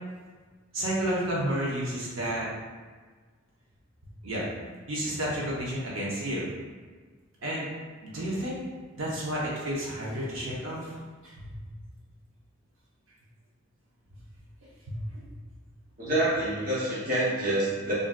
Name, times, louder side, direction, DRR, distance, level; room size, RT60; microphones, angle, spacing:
voice 1, 0.7-2.5 4.2-4.4 4.9-6.5 7.4-7.6 8.0-8.6 8.9-10.9 14.9-15.3, right 1 dB, 80° right, -6 dB, 0.7 m, -31 dB
voice 2, 16.0-17.9, right 1 dB, 45° right, -8 dB, 0.8 m, -27 dB
3.6 x 2.5 x 2.2 m, 1.4 s
head